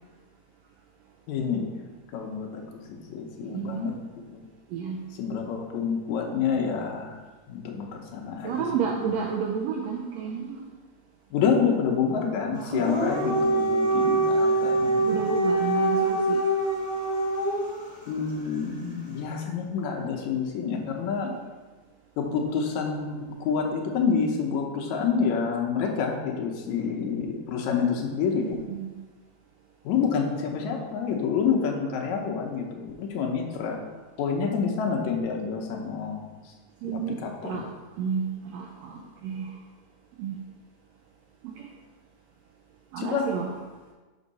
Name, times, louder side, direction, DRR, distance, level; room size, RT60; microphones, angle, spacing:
voice 1, 1.3-1.7 2.1-2.6 2.9-3.9 4.3-4.4 5.2-7.2 7.5-8.6 11.3-15.2 18.1-21.3 22.2-28.5 29.9-33.8 34.2-36.3 36.8-37.6 43.0-43.3, left 6 dB, 80° left, 1 dB, 2.1 m, -28 dB
voice 2, 3.5-3.9 4.7-5.0 8.4-10.6 12.5-12.9 15.0-16.4 28.4-28.9 36.8-37.7 38.0-39.5 40.2-40.4 41.4-41.7 42.9-43.6, right 6 dB, 80° right, 0 dB, 1.5 m, -31 dB
Dog, 12.6-17.8, right 2 dB, ahead, 1.1 m, -24 dB
6.3 x 5.4 x 4.0 m, 1.3 s
omnidirectional pair, 3.3 m